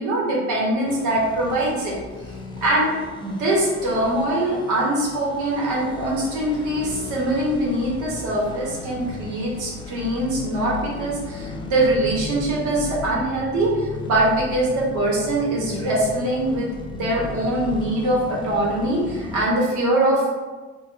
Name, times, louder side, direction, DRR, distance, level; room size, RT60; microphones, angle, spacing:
voice 1, 0.0-2.0 2.6-2.9 3.2-20.3, right 1 dB, 60° right, -3 dB, 0.9 m, -23 dB
sound 1, 0.9-19.5, left 3 dB, 15° left, 0.3 m, -36 dB
3.0 x 2.1 x 2.5 m, 1.3 s
hypercardioid pair, 60°, 34 cm